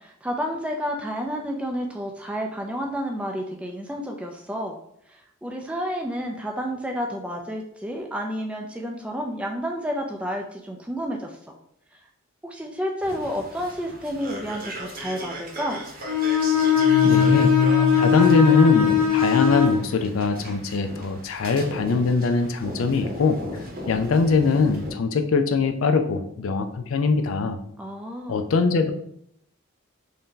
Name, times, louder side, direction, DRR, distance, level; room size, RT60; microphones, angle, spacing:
voice 1, 0.0-4.8 5.1-11.5 12.4-15.8 27.8-28.4, equal, 5° right, 1 dB, 0.3 m, -30 dB
sound 1, 13.0-24.9, equal, 45° right, 0.8 m, -38 dB
Bowed string instrument, 16.1-19.8, left 8 dB, 80° right, 0.7 m, -19 dB
sound 2, 16.8-19.6, left 2 dB, 35° left, 0.8 m, -26 dB
voice 2, 17.0-17.5 18.0-23.4 23.9-27.6 28.3-28.9, left 4 dB, 75° left, 7 dB, 0.4 m, -22 dB
3.4 x 2.7 x 3.7 m, 0.71 s
head